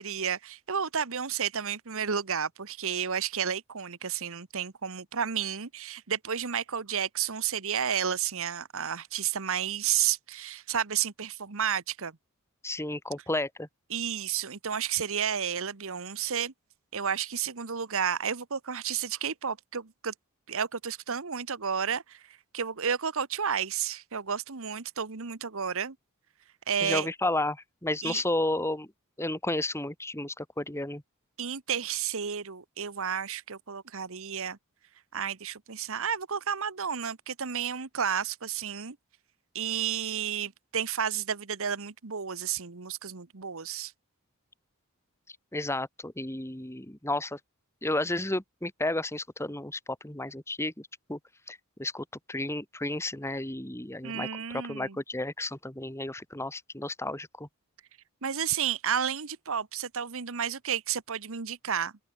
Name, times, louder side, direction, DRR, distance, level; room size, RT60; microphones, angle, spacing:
voice 1, 0.0-12.2 13.9-16.5 16.9-20.1 20.5-26.0 26.7-27.1 28.0-28.2 31.4-34.6 35.1-39.0 39.5-43.9 54.0-55.0 58.2-61.9, right 8 dB, 65° right, 1.2 m, -31 dB
voice 2, 12.6-13.7 26.8-28.9 29.2-31.0 45.5-47.4 47.8-51.2 51.5-54.3 54.5-57.5, left 2 dB, 10° left, 2.2 m, -32 dB
open air
head